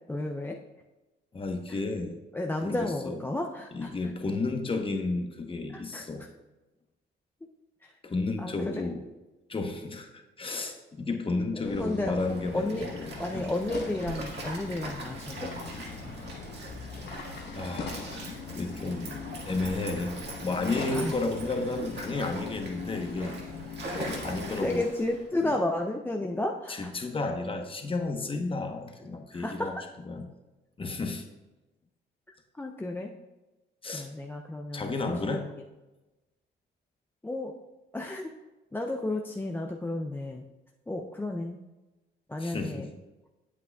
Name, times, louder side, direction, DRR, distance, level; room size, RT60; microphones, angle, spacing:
voice 1, 0.1-0.6 1.7-1.8 2.3-3.9 5.7-6.3 7.8-8.0 8.4-8.9 11.5-12.9 13.2-15.5 20.9-21.1 23.2-23.4 24.1-24.3 24.6-26.9 29.3-29.7 32.5-33.1 33.9-35.4 37.2-37.5 37.9-38.3 38.7-40.5 40.9-41.6 42.3-42.9, left 2 dB, 10° left, 2 dB, 0.5 m, -32 dB
voice 2, 1.3-2.2 2.6-3.2 3.7-6.2 8.0-9.0 9.5-10.1 10.4-13.5 17.5-18.3 18.6-19.2 19.5-23.4 24.2-24.8 25.4-25.5 26.9-29.7 30.1-30.2 30.8-31.3 33.8-34.1 34.7-35.6 42.4-42.9, left 3 dB, 25° left, 5 dB, 0.9 m, -32 dB
sound 1, 11.6-24.8, left 4 dB, 60° left, 1.0 m, -40 dB
Stream, 12.2-25.3, right 2 dB, 60° right, 1.9 m, -42 dB
8.3 x 7.8 x 2.3 m, 1.1 s
cardioid pair, 90°, 20 cm